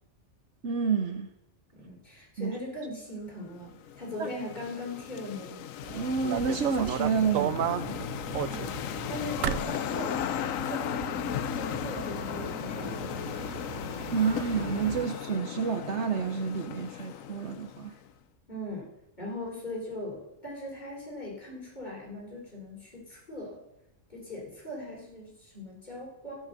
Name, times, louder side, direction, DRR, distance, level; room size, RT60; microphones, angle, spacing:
voice 1, 0.6-1.3 2.4-2.6 4.2-4.3 5.9-8.0 14.1-17.9, right 6 dB, 60° right, 7 dB, 1.2 m, -29 dB
voice 2, 1.8-5.7 8.4-13.3 18.5-18.9 19.2-23.6 24.1-26.5, left 1 dB, 35° left, -4 dB, 4.6 m, -40 dB
sound 1, 3.5-18.0, left 10 dB, 80° left, 1.0 m, -36 dB
sound 2, 5.8-15.1, right 10 dB, 85° right, 1.1 m, -36 dB
16.0 x 6.2 x 6.8 m, 0.89 s
omnidirectional pair, 1.4 m